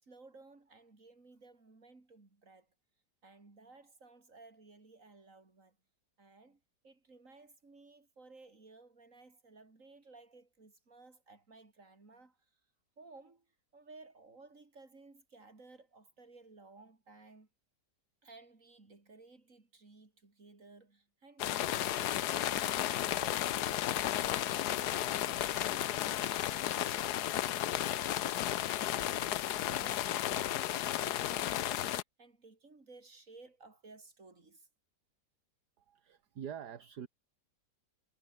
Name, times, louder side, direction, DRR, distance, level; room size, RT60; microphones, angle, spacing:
voice 1, 0.0-2.7 3.2-5.8 6.2-12.4 13.0-13.5 13.7-17.5 18.2-29.2 29.5-34.7, right 3 dB, 50° right, 4.2 m, -57 dB
sound 1, 21.4-32.0, left 12 dB, 75° left, 1.3 m, -33 dB
voice 2, 35.8-37.1, right 8 dB, 70° right, 2.0 m, -45 dB
omnidirectional pair, 1.8 m